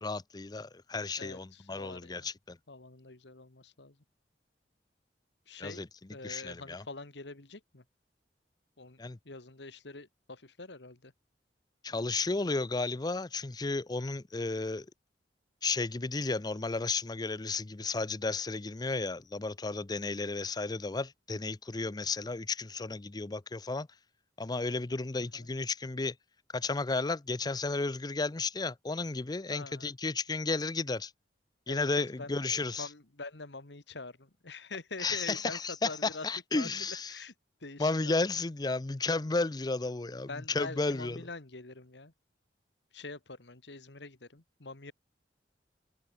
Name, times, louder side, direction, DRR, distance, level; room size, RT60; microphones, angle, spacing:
voice 1, 0.0-2.6 5.6-5.9 6.2-6.8 9.0-9.2 11.8-14.9 15.6-23.9 24.4-26.1 26.5-31.1 31.7-32.9 35.0-37.2 37.8-41.3, left 3 dB, 25° left, 0.6 m, -33 dB
voice 2, 1.2-2.3 2.7-3.9 5.5-5.8 6.1-7.8 8.8-9.0 9.3-11.1 25.3-25.5 29.5-29.9 31.7-31.9 32.2-32.4 32.8-35.6 35.8-36.7 37.1-37.3 37.6-38.1 40.3-42.1 42.9-44.9, left 3 dB, 75° left, 1.9 m, -45 dB
open air
head